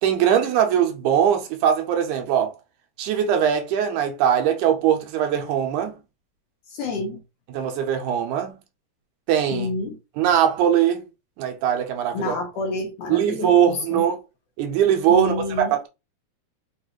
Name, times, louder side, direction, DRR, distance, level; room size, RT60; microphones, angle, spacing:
voice 1, 0.0-2.5 3.0-5.9 7.5-8.5 9.3-9.7 10.2-11.0 11.4-12.4 13.1-14.2 14.6-15.9, right 9 dB, 90° right, 2.3 m, -21 dB
voice 2, 6.7-7.2 9.5-10.0 12.1-14.0 15.1-15.7, left 3 dB, 70° left, 1.6 m, -29 dB
5.3 x 2.4 x 3.0 m
omnidirectional pair, 3.5 m